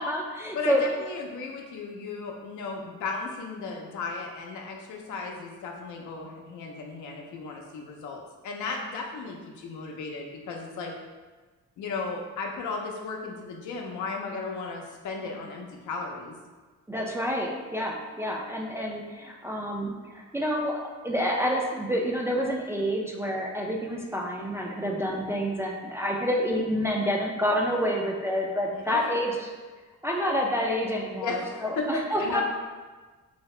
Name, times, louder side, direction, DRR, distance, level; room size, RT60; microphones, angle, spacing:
voice 1, 0.0-0.8 16.9-29.5 30.0-32.4, equal, 10° right, -1 dB, 0.3 m, -28 dB
voice 2, 0.5-11.0 11.8-16.4 24.9-25.1 28.7-29.3 31.2-32.4, left 3 dB, 75° left, 1 dB, 0.6 m, -35 dB
2.8 x 2.7 x 3.2 m, 1.3 s
cardioid pair, 90°, 30 cm